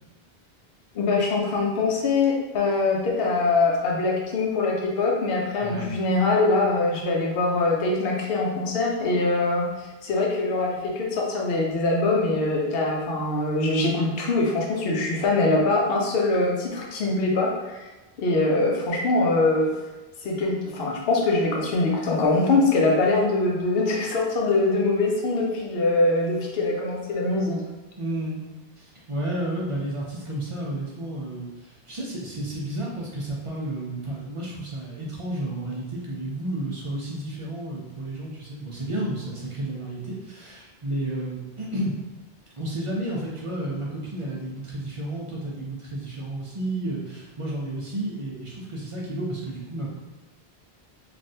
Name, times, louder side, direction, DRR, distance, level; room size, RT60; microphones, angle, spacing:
voice 1, 0.9-9.7 10.0-17.9 18.2-19.7 20.2-27.6, left 2 dB, 70° left, -1 dB, 0.8 m, -23 dB
voice 2, 5.6-5.9 28.0-28.4 28.8-41.9 42.6-49.9, right 1 dB, 40° right, -4 dB, 0.5 m, -32 dB
3.2 x 2.5 x 2.7 m, 1.1 s
omnidirectional pair, 1.0 m